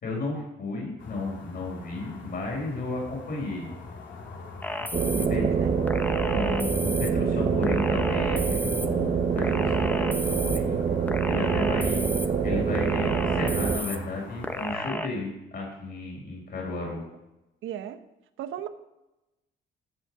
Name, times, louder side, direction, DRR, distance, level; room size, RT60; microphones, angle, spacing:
voice 1, 0.0-3.7 5.1-5.5 6.2-10.8 11.2-12.0 12.4-17.0, left 2 dB, 50° left, -1 dB, 4.5 m, -33 dB
sound 1, 1.0-14.7, left 3 dB, 70° left, 2.5 m, -43 dB
sound 2, 4.6-5.3 5.9-7.1 7.6-8.9 9.4-10.6 11.1-12.3 12.7-14.0 14.4-15.1, left 1 dB, 10° left, 0.8 m, -33 dB
sound 3, 4.9-13.8, right 6 dB, 35° right, 1.0 m, -25 dB
voice 2, 5.0-5.8 7.1-7.3 11.4-11.8 17.6-18.0 18.4-18.7, right 10 dB, 80° right, 11 dB, 0.9 m, -38 dB
14.5 x 5.4 x 6.3 m, 0.96 s
cardioid pair, 90°, 20 cm